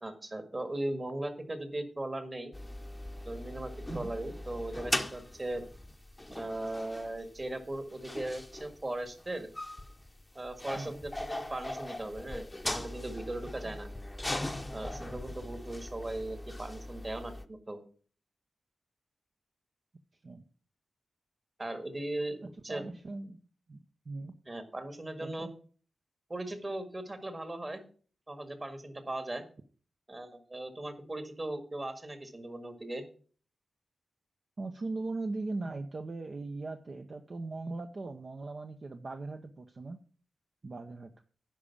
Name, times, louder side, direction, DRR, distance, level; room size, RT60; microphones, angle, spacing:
voice 1, 0.0-2.5 3.2-5.6 6.3-9.5 10.4-13.9 14.7-17.8 21.6-22.8 24.5-25.5 26.3-27.8 28.3-29.4 30.1-33.0, right 1 dB, 30° right, 8 dB, 1.8 m, -38 dB
sound 1, 2.5-17.4, left 1 dB, 15° left, 0.8 m, -40 dB
voice 2, 15.0-15.3 20.2-20.4 22.4-23.4 23.7-24.4 25.2-25.5 34.6-40.0 40.6-41.1, right 3 dB, 45° right, 6 dB, 0.7 m, -39 dB
10.5 x 5.0 x 7.0 m, 0.42 s
wide cardioid pair, 90°, 0 cm